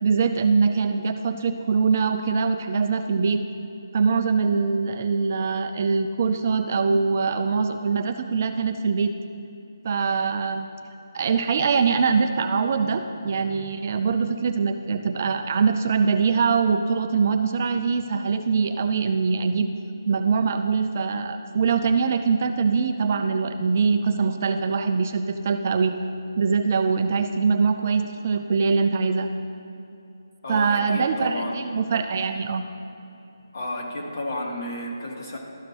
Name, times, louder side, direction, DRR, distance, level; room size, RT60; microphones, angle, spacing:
voice 1, 0.0-3.4 3.9-9.1 9.8-10.7 11.1-19.7 20.1-25.9 26.4-29.3 30.5-32.6, right 5 dB, 35° right, 7 dB, 0.3 m, -23 dB
voice 2, 30.4-31.6 33.5-35.4, left 1 dB, 50° left, -1 dB, 1.6 m, -32 dB
13.0 x 5.1 x 2.9 m, 2.9 s
figure-of-eight pair, 155°, 2 cm